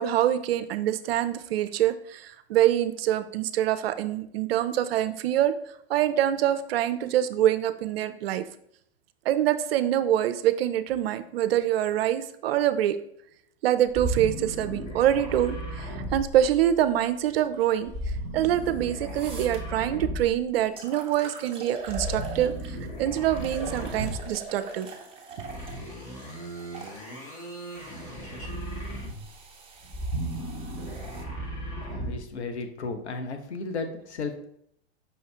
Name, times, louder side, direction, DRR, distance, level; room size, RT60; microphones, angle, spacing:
voice 1, 0.0-5.5 5.9-8.4 9.3-13.0 13.6-24.9, right 11 dB, 65° right, 12 dB, 0.5 m, -25 dB
sound 1, 13.9-16.9 17.9-20.6 21.8-24.4 25.4-29.4 29.8-32.3, right 1 dB, 25° left, 1.6 m, -35 dB
sound 2, 18.6-18.7 19.1-19.6 20.3-20.4 20.8-22.8 23.4-27.0 27.8-31.2, right 4 dB, 15° right, 0.8 m, -43 dB
voice 2, 31.8-34.5, left 4 dB, 85° left, 7 dB, 0.8 m, -34 dB
5.6 x 2.7 x 3.3 m, 0.71 s
hypercardioid pair, 105°, 33 cm